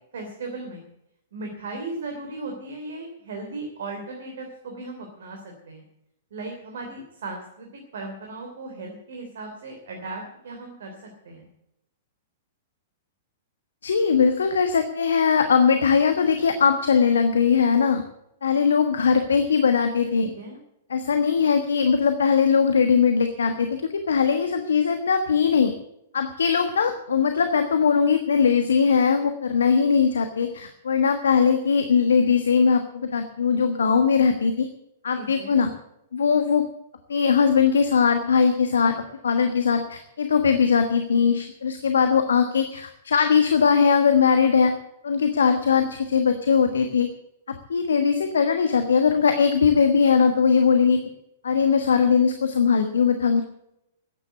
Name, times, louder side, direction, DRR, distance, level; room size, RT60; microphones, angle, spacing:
voice 1, 0.1-0.8 1.3-5.4 5.7-5.8 6.3-7.7 7.9-11.5 20.2-20.6 35.1-35.6, right 3 dB, 60° right, 3 dB, 3.2 m, -36 dB
voice 2, 13.8-18.0 18.4-20.3 20.9-25.7 26.1-34.7 35.0-35.7 36.1-36.7 37.1-44.7 45.0-47.1 47.5-51.0 51.4-53.4, left 6 dB, 70° left, 7 dB, 1.3 m, -20 dB
14.5 x 9.9 x 8.0 m, 0.82 s
figure-of-eight pair, 105°, 0 cm